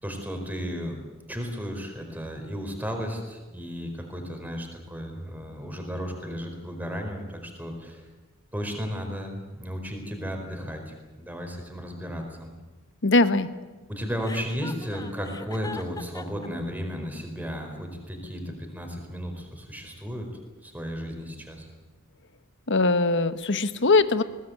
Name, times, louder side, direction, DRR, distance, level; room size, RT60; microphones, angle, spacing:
voice 1, 0.0-1.0 1.3-8.0 8.5-12.5 13.9-20.3 20.6-21.7, equal, 10° right, 3 dB, 4.6 m, -34 dB
voice 2, 13.0-13.5 22.7-24.2, left 3 dB, 55° left, 12 dB, 1.2 m, -21 dB
Chuckle chortle, 14.2-16.5, left 3 dB, 15° left, 1.0 m, -40 dB
21.5 x 19.0 x 9.4 m, 1.2 s
head